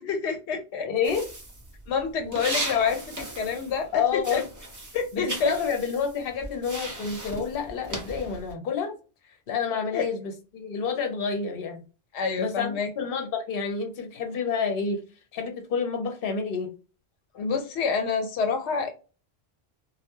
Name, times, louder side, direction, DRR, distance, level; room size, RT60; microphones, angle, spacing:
voice 1, 0.1-0.9 1.9-4.4 4.9-5.5 9.9-10.0 12.1-12.9 17.3-18.9, left 5 dB, 85° left, 0.9 m, -27 dB
voice 2, 0.8-1.3 3.9-4.4 5.1-8.9 9.5-11.8 12.4-15.0 15.3-16.7, left 6 dB, 60° left, 0.9 m, -29 dB
sound 1, 1.0-3.9 4.2-8.5, right 2 dB, 25° right, 0.5 m, -37 dB
2.2 x 2.2 x 2.9 m
omnidirectional pair, 1.1 m